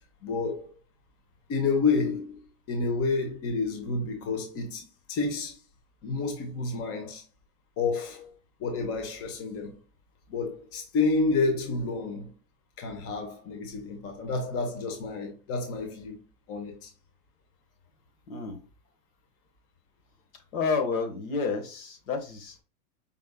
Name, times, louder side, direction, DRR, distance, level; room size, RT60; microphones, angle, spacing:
voice 1, 0.2-0.8 1.5-2.4 2.7-5.6 6.0-7.2 7.8-8.3 8.6-9.7 10.3-12.3 12.8-16.2 16.5-16.9, left 4 dB, 30° left, 1.1 m, -29 dB
voice 2, 18.3-18.6 20.5-22.6, left 4 dB, 60° left, 1.4 m, -30 dB
5.3 x 3.3 x 2.3 m
hypercardioid pair, 120°, 46 cm